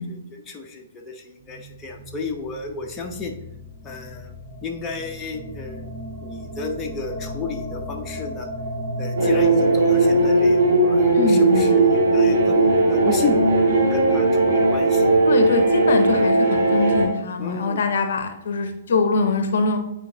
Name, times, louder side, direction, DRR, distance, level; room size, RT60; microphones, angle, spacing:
voice 1, 0.0-3.3 3.8-4.4 4.6-5.9 6.2-8.5 9.0-13.4 13.9-15.1 16.2-16.5 17.4-17.8, left 4 dB, 15° left, 1 dB, 0.7 m, -32 dB
sound 1, 1.4-13.7, left 1 dB, 25° right, 1.1 m, -35 dB
sound 2, 9.2-17.1, right 2 dB, 55° right, 1.9 m, -17 dB
voice 2, 11.1-11.7 15.3-19.8, left 4 dB, 55° left, 7 dB, 0.7 m, -23 dB
9.4 x 4.4 x 2.9 m, 0.82 s
figure-of-eight pair, 120°, 0 cm